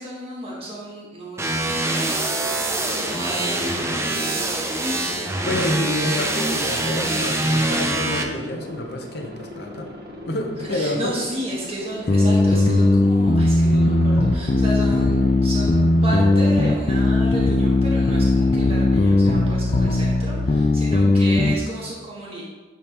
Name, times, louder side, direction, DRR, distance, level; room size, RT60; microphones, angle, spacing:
voice 1, 0.0-2.4 2.9-4.6 5.4-5.6 10.6-22.4, right 1 dB, 35° right, -5 dB, 1.3 m, -33 dB
sound 1, 1.4-8.2, right 1 dB, 15° right, 0.5 m, -24 dB
Aircraft, 2.3-20.6, left 1 dB, 60° right, 0.9 m, -39 dB
voice 2, 5.1-9.9 10.3-11.1 12.1-12.2, left 1 dB, 65° left, 2 dB, 0.8 m, -29 dB
sound 2, 12.1-21.6, left 2 dB, 35° left, 0.4 m, -18 dB
9.8 x 3.5 x 2.9 m, 1.2 s
head